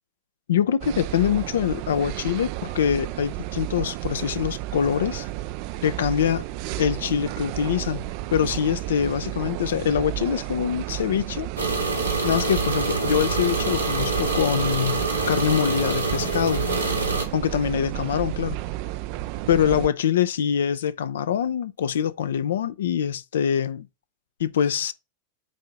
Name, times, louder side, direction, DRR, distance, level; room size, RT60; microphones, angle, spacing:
voice 1, 0.5-5.3 5.8-6.4 6.8-11.5 12.2-16.7 17.3-18.6 19.5-23.9 24.4-24.9, left 8 dB, 60° left, 0.6 m, -24 dB
sound 1, 0.8-19.9, right 16 dB, 45° right, 0.4 m, -32 dB
sound 2, 11.6-17.3, right 3 dB, 85° right, 1.9 m, -26 dB
8.3 x 2.8 x 5.4 m
figure-of-eight pair, 90°, 0 cm